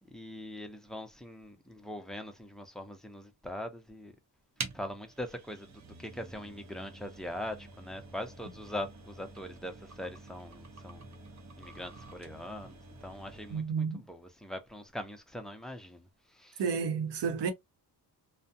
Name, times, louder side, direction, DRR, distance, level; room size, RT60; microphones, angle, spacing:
voice 1, 0.0-4.1 4.7-11.2 11.6-16.6, left 1 dB, ahead, 0.6 m, -42 dB
sound 1, 4.6-13.7, right 4 dB, 40° right, 0.7 m, -47 dB
voice 2, 13.5-14.0 16.6-17.5, right 6 dB, 75° right, 0.8 m, -31 dB
2.4 x 2.1 x 2.6 m
cardioid pair, 100°, 42 cm